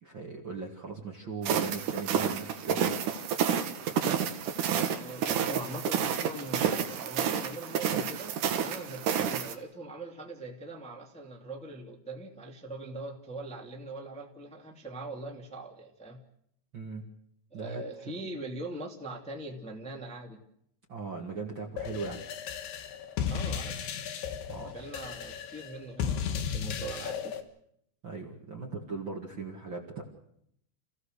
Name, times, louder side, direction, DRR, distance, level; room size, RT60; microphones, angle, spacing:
voice 1, 0.0-2.8 16.7-17.0 17.5-17.8 20.9-22.2 24.5-24.8 28.0-30.0, right 4 dB, 40° right, 0 dB, 2.1 m, -38 dB
sound 1, 1.4-9.5, right 8 dB, 60° right, 2.6 m, -30 dB
voice 2, 4.7-16.2 17.5-20.4 23.3-23.8 24.6-27.4, right 2 dB, ahead, 0 dB, 1.9 m, -41 dB
sound 2, 21.8-27.4, left 8 dB, 80° left, 3.4 m, -35 dB
28.5 x 16.0 x 6.6 m, 0.72 s
omnidirectional pair, 4.5 m